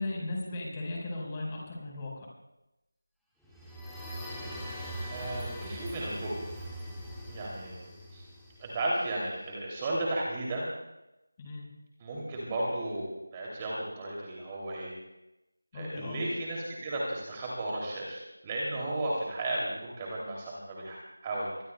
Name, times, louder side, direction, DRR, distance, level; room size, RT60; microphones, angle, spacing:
voice 1, 0.0-2.3 11.4-11.7 15.7-16.2, left 2 dB, 15° left, -2 dB, 4.5 m, -36 dB
sound 1, 3.4-9.2, equal, ahead, 1.7 m, -41 dB
voice 2, 5.1-6.5 7.3-7.8 8.1-8.2 8.6-10.7 12.0-14.9 15.7-18.2 18.4-21.0 21.2-21.5, right 1 dB, 15° right, -4 dB, 2.6 m, -34 dB
23.5 x 21.0 x 2.2 m, 0.93 s
figure-of-eight pair, 170°, 0 cm